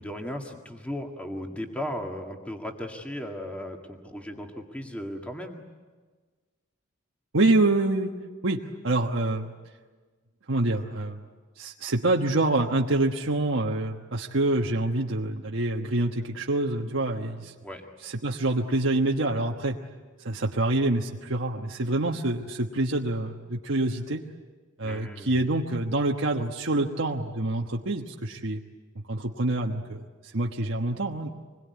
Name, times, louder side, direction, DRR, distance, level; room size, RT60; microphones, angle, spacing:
voice 1, 0.0-5.6 17.6-17.8 24.8-25.4, left 1 dB, 5° left, 2 dB, 1.9 m, -36 dB
voice 2, 7.3-8.1 8.4-9.5 10.5-11.2 11.6-17.5 18.0-19.8 20.2-24.2 24.8-28.6 29.1-31.3, right 2 dB, 70° right, 0 dB, 1.3 m, -26 dB
26.5 x 21.5 x 9.5 m, 1.4 s
head